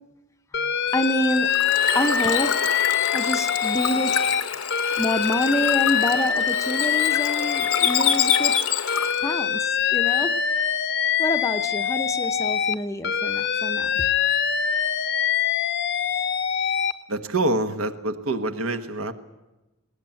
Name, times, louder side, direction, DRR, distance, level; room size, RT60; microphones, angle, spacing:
Alarm, 0.5-4.4 4.7-8.6 8.9-12.7 13.0-16.9, left 8 dB, 50° left, 0.8 m, -24 dB
Bird / Water, 0.9-9.3, left 8 dB, 75° left, 1.0 m, -27 dB
voice 1, 0.9-1.5 1.9-2.8 3.1-4.2 5.0-8.5 9.2-10.4 11.2-14.1, left 1 dB, 15° left, 8 dB, 0.7 m, -27 dB
voice 2, 17.1-19.1, right 2 dB, 70° right, 8 dB, 1.3 m, -26 dB
19.5 x 18.5 x 9.0 m, 1.0 s
head